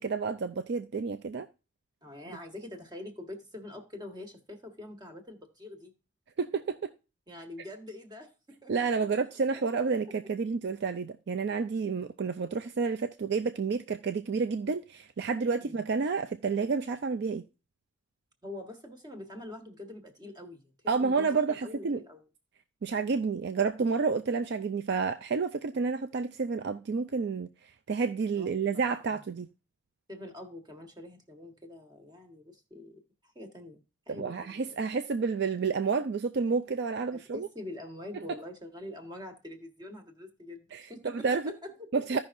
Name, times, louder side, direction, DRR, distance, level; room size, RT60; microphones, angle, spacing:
voice 1, 0.0-1.5 6.4-6.8 8.7-17.4 20.9-22.0 22.8-27.5 27.9-29.5 34.1-37.5 40.7-41.4 41.9-42.2, right 5 dB, 60° right, 0.4 m, -30 dB
voice 2, 2.0-5.9 7.3-9.1 9.5-9.6 10.0-10.1 15.6-15.8 18.4-22.2 28.4-29.2 30.1-34.7 37.1-42.2, left 1 dB, 20° right, 1.5 m, -45 dB
15.0 x 5.6 x 2.6 m
head